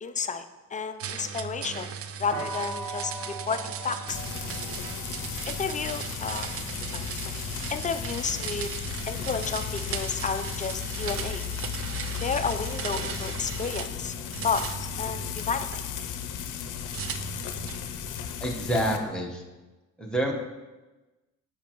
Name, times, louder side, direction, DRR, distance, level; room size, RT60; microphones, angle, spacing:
voice 1, 0.0-4.2 5.5-6.5 6.9-7.5 7.7-8.7 9.1-11.4 12.2-14.2 14.4-15.7, left 5 dB, 25° left, 10 dB, 0.4 m, -32 dB
sound 1, 1.0-14.0 14.3-15.8 16.9-17.9, right 7 dB, 50° right, 0.5 m, -37 dB
sound 2, 2.3-8.2, right 2 dB, 75° right, 2.0 m, -41 dB
Frying (food), 4.1-19.0, left 8 dB, 90° left, 0.6 m, -35 dB
voice 2, 18.4-19.4 20.0-20.3, right 1 dB, 5° left, -1 dB, 1.1 m, -27 dB
7.0 x 5.5 x 3.0 m, 1.1 s
cardioid pair, 90°, 30 cm